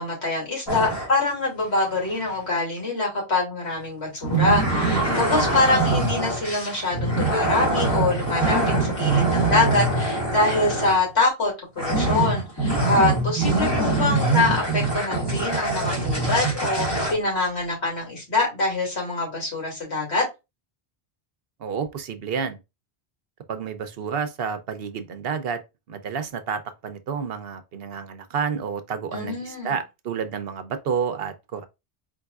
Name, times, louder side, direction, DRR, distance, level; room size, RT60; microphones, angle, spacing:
voice 1, 0.0-20.2 29.1-29.8, left 3 dB, 80° left, 2.7 m, -25 dB
sound 1, 0.7-1.1 4.2-11.1 11.8-17.1, right 2 dB, 20° left, 1.8 m, -23 dB
voice 2, 21.6-22.6 23.5-25.6 25.9-31.7, right 6 dB, 65° right, 0.8 m, -30 dB
4.6 x 3.7 x 2.3 m
omnidirectional pair, 1.1 m